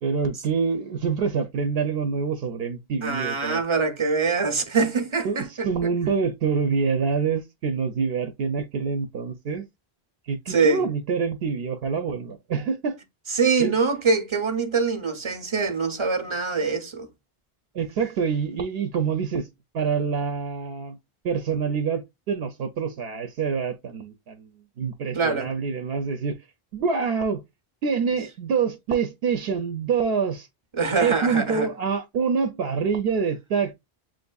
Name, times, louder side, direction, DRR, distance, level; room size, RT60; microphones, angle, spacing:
voice 1, 0.0-3.6 5.2-9.7 10.3-13.0 13.6-13.8 17.7-19.5 19.7-21.0 21.2-24.5 24.8-26.4 26.7-27.4 27.8-30.5 31.0-33.7, right 5 dB, 75° right, 0.8 m, -26 dB
voice 2, 3.0-5.9 10.5-10.8 13.3-17.1 25.1-25.5 30.8-31.7, right 4 dB, 35° right, 0.6 m, -24 dB
7.4 x 2.6 x 2.2 m
omnidirectional pair, 1.0 m